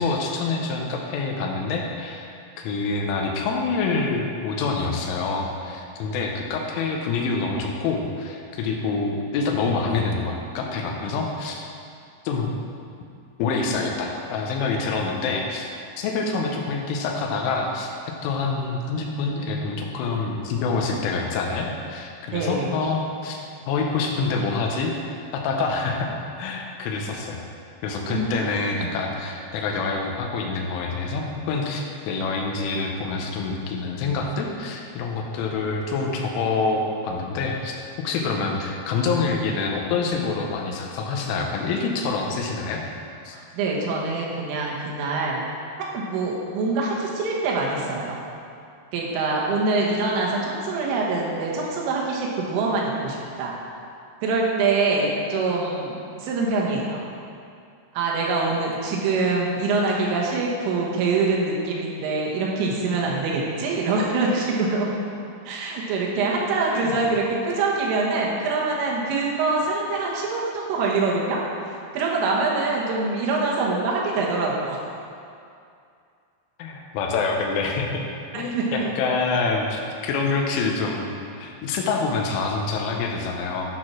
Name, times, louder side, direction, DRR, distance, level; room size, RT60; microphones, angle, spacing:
voice 1, 0.0-11.6 12.2-12.5 13.4-17.9 18.2-26.1 26.4-27.4 27.8-42.8 43.3-43.4 66.7-67.0 76.6-78.0 78.3-83.8, left 4 dB, 85° left, 1 dB, 3.4 m, -26 dB
voice 2, 22.3-22.8 28.1-28.4 28.7-29.1 43.3-45.4 45.9-48.2 48.9-53.5 54.2-57.0 57.9-64.9 65.5-71.4 71.9-74.8 78.3-78.9, right 3 dB, 90° right, -3 dB, 3.8 m, -24 dB
11.5 x 4.3 x 6.1 m, 2.4 s
omnidirectional pair, 5.5 m